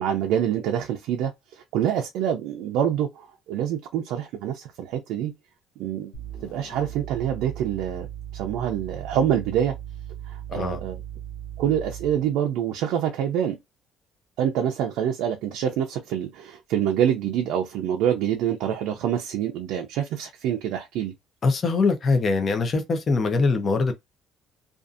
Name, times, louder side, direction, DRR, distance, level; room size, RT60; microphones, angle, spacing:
voice 1, 0.0-5.3 5.8-6.1 6.4-8.1 8.3-9.7 10.3-11.0 11.6-13.6 14.4-21.1, right 9 dB, 80° right, 0.5 m, -26 dB
sound 1, 6.1-12.3, right 10 dB, 85° left, 0.7 m, -38 dB
voice 2, 21.4-23.9, left 4 dB, 30° left, 0.6 m, -22 dB
2.6 x 2.4 x 2.4 m
cardioid pair, 170°, 0 cm